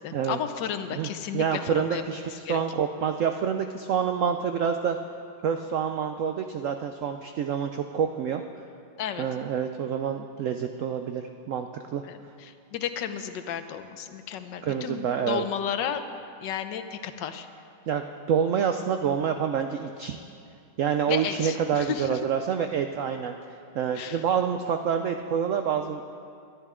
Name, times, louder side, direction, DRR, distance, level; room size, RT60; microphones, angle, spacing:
voice 1, 0.0-2.0 2.4-2.6 9.0-9.3 12.0-16.0 16.4-17.5 21.1-22.2 23.9-24.2, left 8 dB, 75° left, 9 dB, 1.4 m, -33 dB
voice 2, 1.3-5.0 5.4-8.4 9.2-11.7 11.9-12.0 14.6-15.5 17.9-20.2 20.8-23.3 23.7-26.1, right 7 dB, 85° right, 6 dB, 0.7 m, -27 dB
20.5 x 11.5 x 3.7 m, 2.4 s
omnidirectional pair, 2.0 m